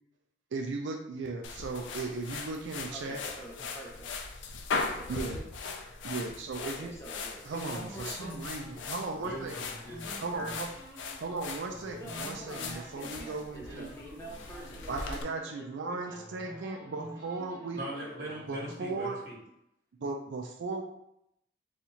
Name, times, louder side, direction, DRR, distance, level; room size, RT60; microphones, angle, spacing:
voice 1, 0.5-3.2 5.1-5.4 6.0-6.9 7.5-9.5 10.2-10.7 11.2-13.9 14.9-17.8 18.5-19.2 20.0-20.8, right 3 dB, 75° right, 2 dB, 0.4 m, -36 dB
sound 1, 1.4-15.2, left 4 dB, 80° left, 0.4 m, -39 dB
voice 2, 2.9-4.1 4.8-5.5 6.6-8.4 11.9-16.2, right 1 dB, 15° left, -3 dB, 0.6 m, -46 dB
sound 2, 7.7-13.3 13.6-15.8 16.1-18.8, equal, 15° right, 0.9 m, -49 dB
voice 3, 9.2-10.5 17.7-19.3, right 1 dB, 45° right, -5 dB, 1.3 m, -41 dB
4.1 x 2.4 x 2.8 m, 0.78 s
head